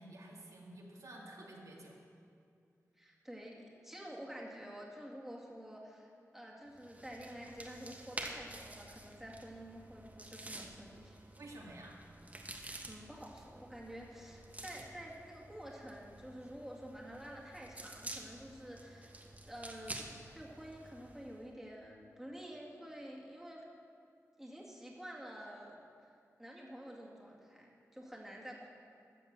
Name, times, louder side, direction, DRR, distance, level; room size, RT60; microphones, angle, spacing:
voice 1, 0.0-2.0 11.4-12.0, right 1 dB, 75° right, -3 dB, 2.1 m, -51 dB
voice 2, 3.0-11.2 12.6-19.1 19.5-20.1 20.3-23.6 24.4-25.8 26.4-28.7, equal, 5° right, -3 dB, 2.2 m, -49 dB
sound 1, 6.7-21.4, right 1 dB, 25° right, 1.3 m, -50 dB
14.0 x 7.0 x 7.4 m, 2.4 s
wide cardioid pair, 75°, 6 cm